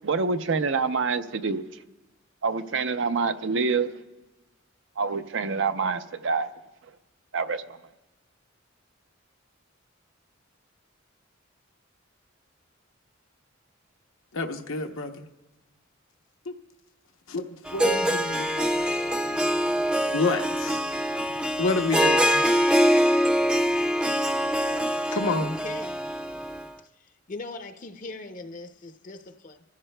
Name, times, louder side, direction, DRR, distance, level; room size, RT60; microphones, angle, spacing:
voice 1, 0.0-1.6 2.4-4.0 5.0-6.5 7.3-7.6, right 4 dB, 65° right, 0.6 m, -26 dB
voice 2, 14.3-15.3 16.5-16.6 17.3-19.4 20.1-20.8 21.6-22.4 25.1-25.5, left 3 dB, 85° left, 0.8 m, -29 dB
Harp, 17.7-26.7, equal, 5° right, 0.4 m, -24 dB
voice 3, 25.4-26.0 26.9-29.6, left 3 dB, 40° left, 0.6 m, -40 dB
27.0 x 14.5 x 2.2 m
head